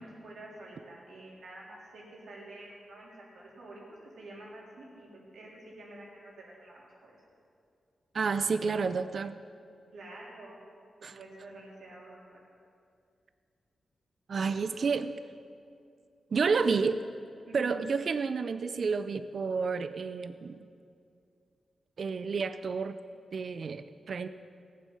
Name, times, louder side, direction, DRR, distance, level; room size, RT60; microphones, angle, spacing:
voice 1, 0.2-3.8 4.2-7.1 9.9-10.6 11.2-12.4 17.4-17.8, right 2 dB, 75° right, -5 dB, 3.5 m, -48 dB
voice 2, 8.1-9.4 11.0-11.2 14.3-15.1 16.3-17.0 17.5-20.7 22.0-23.0 23.3-24.3, right 5 dB, 60° right, 11 dB, 0.4 m, -30 dB
17.5 x 7.5 x 5.6 m, 2.4 s
cardioid pair, 80°, 0 cm